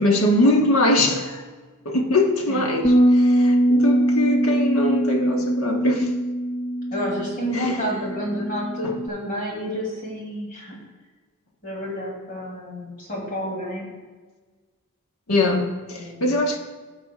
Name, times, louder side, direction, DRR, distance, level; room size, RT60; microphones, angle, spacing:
voice 1, 0.0-1.4 1.8-6.1 7.5-7.8 8.8-8.9 15.3-16.6, left 1 dB, 80° left, 2 dB, 1.2 m, -22 dB
sound 1, 2.8-9.1, equal, 25° left, 0.4 m, -21 dB
voice 2, 6.9-10.7 11.6-13.9 15.9-16.3, equal, 40° left, -3 dB, 2.7 m, -29 dB
15.5 x 6.2 x 2.3 m, 1.4 s
head